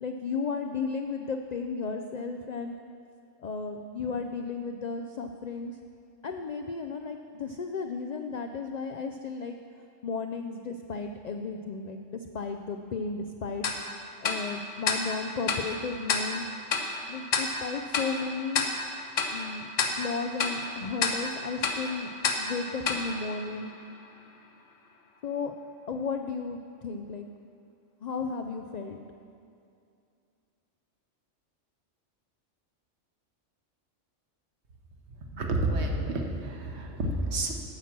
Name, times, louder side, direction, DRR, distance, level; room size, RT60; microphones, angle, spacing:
voice 1, 0.0-2.8 3.4-5.8 6.2-9.6 10.0-13.7 14.2-16.4 17.1-18.6 19.3-19.7 20.0-22.1 22.4-23.7 25.2-25.5 25.9-27.3 28.0-29.0, left 4 dB, 75° left, 5 dB, 0.4 m, -34 dB
Tick-tock, 13.6-24.1, left 4 dB, 90° left, 1.2 m, -32 dB
voice 2, 35.3-37.5, right 2 dB, 65° right, 2 dB, 1.3 m, -29 dB
9.8 x 5.9 x 7.3 m, 2.5 s
omnidirectional pair, 1.3 m